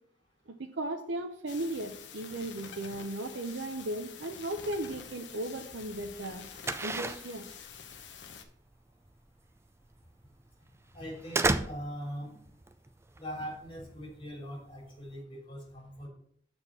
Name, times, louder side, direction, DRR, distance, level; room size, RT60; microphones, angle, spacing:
voice 1, 0.5-6.4 6.8-7.4, right 1 dB, 80° right, 3 dB, 0.7 m, -36 dB
sound 1, 1.5-8.4, left 6 dB, 70° left, 0.9 m, -47 dB
sound 2, 4.5-15.2, right 3 dB, 15° right, 0.4 m, -37 dB
voice 2, 10.9-12.3 13.2-16.1, equal, 25° left, -1 dB, 3.5 m, -41 dB
7.2 x 4.4 x 6.8 m, 0.64 s
head